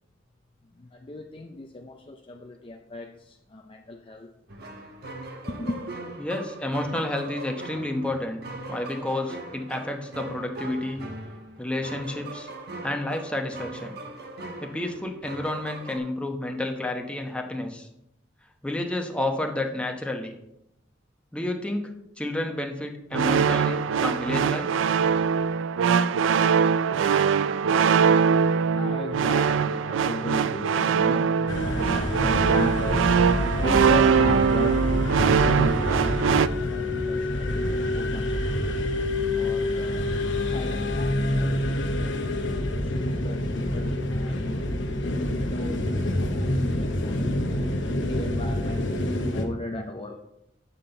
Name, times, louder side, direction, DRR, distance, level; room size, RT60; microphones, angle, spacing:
voice 1, 0.8-4.3 5.5-5.8 27.7-44.8 45.4-45.8 46.1-50.2, left 2 dB, 25° left, 0.5 m, -36 dB
sound 1, 4.5-16.0, right 2 dB, 55° right, 1.1 m, -40 dB
voice 2, 6.2-8.4 8.7-11.1 11.6-12.5 12.8-13.9 14.6-17.9 18.6-20.3 21.3-24.7, left 1 dB, 5° left, 0.9 m, -30 dB
sound 2, 23.1-36.5, right 6 dB, 75° right, 0.3 m, -22 dB
sound 3, 31.5-49.5, left 1 dB, 65° left, 1.1 m, -27 dB
8.6 x 7.4 x 3.9 m
head